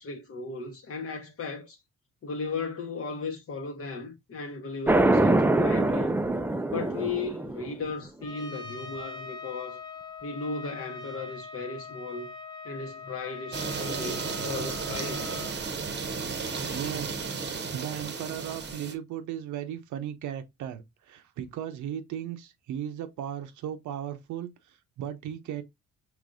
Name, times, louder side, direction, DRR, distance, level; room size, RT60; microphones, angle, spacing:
voice 1, 0.0-1.8 2.2-6.1 6.7-9.8 10.2-12.3 12.6-15.3, left 4 dB, 50° left, 0.9 m, -36 dB
sound 1, 4.9-7.7, right 2 dB, 5° right, 0.3 m, -24 dB
Trumpet, 8.2-15.6, left 5 dB, 15° left, 0.8 m, -42 dB
sound 2, 13.5-18.9, right 5 dB, 35° right, 0.8 m, -33 dB
voice 2, 16.7-25.6, right 10 dB, 75° right, 0.7 m, -37 dB
4.9 x 3.3 x 2.5 m
cardioid pair, 90°, 30 cm